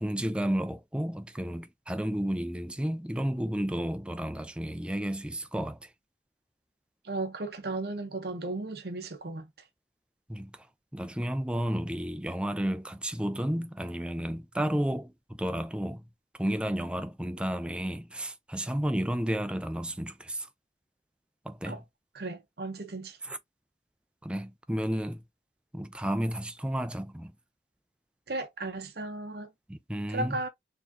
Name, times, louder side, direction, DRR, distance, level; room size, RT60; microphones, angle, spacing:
voice 1, 0.0-5.9 10.3-10.5 10.9-16.0 16.4-20.5 21.5-21.8 23.2-23.4 24.2-25.2 25.7-27.3 29.7-30.4, equal, 5° right, 0.3 m, -32 dB
voice 2, 7.0-9.5 21.7-21.8 22.1-23.2 28.3-29.5 30.1-30.5, right 2 dB, 65° right, 0.8 m, -35 dB
4.3 x 3.6 x 2.7 m
head